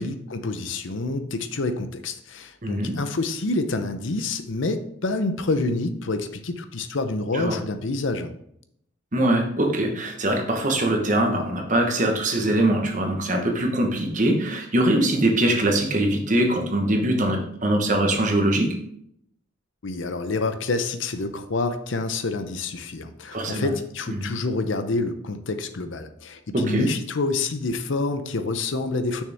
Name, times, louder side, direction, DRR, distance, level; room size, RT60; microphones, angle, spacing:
voice 1, 0.0-8.3 19.8-29.2, left 3 dB, 70° left, 9 dB, 0.7 m, -27 dB
voice 2, 2.6-2.9 7.3-7.5 9.1-18.7 23.3-23.7 24.1-24.3 26.5-26.9, right 1 dB, 40° right, 2 dB, 1.1 m, -22 dB
6.5 x 6.3 x 3.5 m, 0.73 s
head